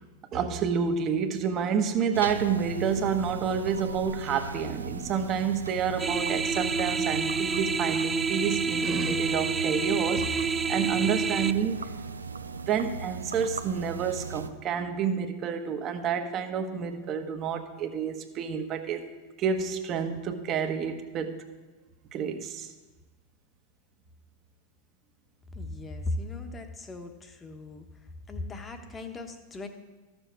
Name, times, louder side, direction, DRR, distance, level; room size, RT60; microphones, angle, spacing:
voice 1, 0.3-11.9 12.6-19.1 19.4-21.4 22.1-22.7, right 7 dB, 40° right, 7 dB, 1.1 m, -29 dB
sound 1, 2.1-14.5, right 4 dB, 90° right, 0.5 m, -37 dB
sound 2, 6.0-11.5, right 4 dB, 20° right, 0.4 m, -28 dB
voice 2, 25.5-27.9 28.3-29.7, left 2 dB, 20° left, 6 dB, 1.2 m, -37 dB
13.0 x 7.0 x 4.6 m, 1.2 s
hypercardioid pair, 95°, 0 cm